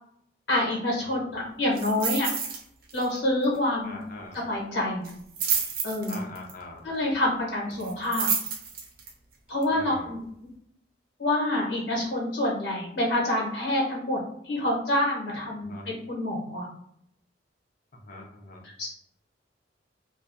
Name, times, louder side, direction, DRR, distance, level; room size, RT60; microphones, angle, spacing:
voice 1, 0.5-2.3 2.9-4.0 4.3-5.1 5.8-6.2 6.8-8.3 9.5-10.2 11.2-14.2 14.4-16.6 18.8-18.9, left 1 dB, 85° left, -3 dB, 1.1 m, -27 dB
voice 2, 1.0-1.3 3.8-4.4 6.1-6.8 7.6-8.0 9.7-10.2 15.6-15.9 18.1-18.6, left 2 dB, 50° left, 1 dB, 0.5 m, -43 dB
sound 1, 1.8-2.6 2.9-3.2 3.4-3.5 5.0-6.5 7.8-9.1 9.6-9.7, right 6 dB, 55° right, 0.6 m, -29 dB
2.5 x 2.2 x 2.6 m, 0.71 s
head